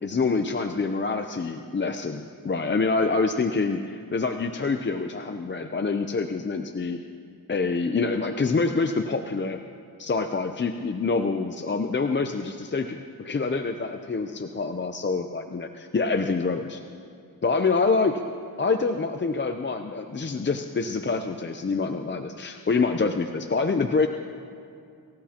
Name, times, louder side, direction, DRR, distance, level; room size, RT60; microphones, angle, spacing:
voice 1, 0.0-7.0 7.5-9.6 10.0-16.8 17.4-18.2 18.6-24.1, left 4 dB, 30° left, 6 dB, 0.6 m, -26 dB
27.0 x 15.5 x 2.9 m, 2.5 s
wide cardioid pair, 100°, 37 cm